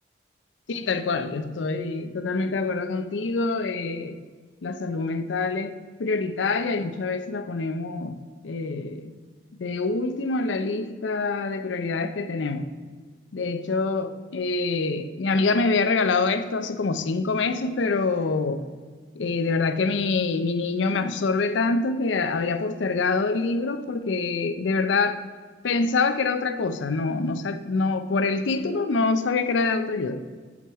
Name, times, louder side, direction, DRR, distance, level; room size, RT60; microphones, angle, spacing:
voice 1, 0.7-4.2 4.6-9.1 9.6-12.7 13.3-18.7 19.2-25.2 25.6-30.2, left 3 dB, 85° left, 0.5 m, -25 dB
7.2 x 6.1 x 4.6 m
head